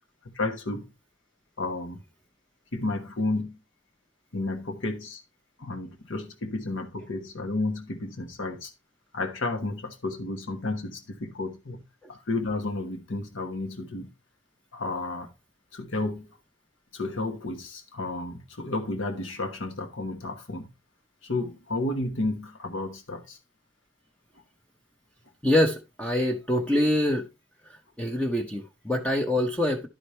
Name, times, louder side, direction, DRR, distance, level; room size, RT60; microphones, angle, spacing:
voice 1, 0.2-0.9 1.6-2.0 2.7-3.6 4.3-5.2 5.6-8.7 9.1-14.1 14.7-15.3 15.7-16.4 16.9-20.7 21.2-23.4, left 2 dB, 85° left, 1.2 m, -32 dB
voice 2, 25.4-27.3 27.7-29.9, left 1 dB, 5° left, 0.7 m, -25 dB
11.0 x 5.0 x 4.3 m
head